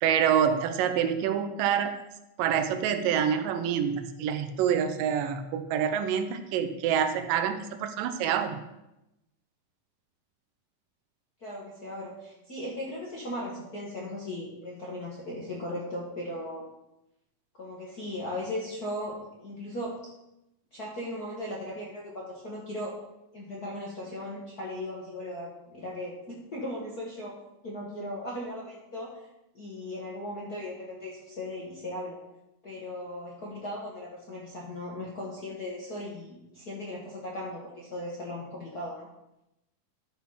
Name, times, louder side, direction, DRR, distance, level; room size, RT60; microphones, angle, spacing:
voice 1, 0.0-2.0 2.4-8.6, right 8 dB, 85° right, 9 dB, 2.4 m, -26 dB
voice 2, 11.4-16.6 17.6-19.9 20.7-22.9 23.3-27.4 27.6-29.1 29.5-32.2 32.6-39.1, left 1 dB, 50° left, -5 dB, 1.2 m, -37 dB
12.0 x 4.1 x 5.6 m, 0.91 s
omnidirectional pair, 3.9 m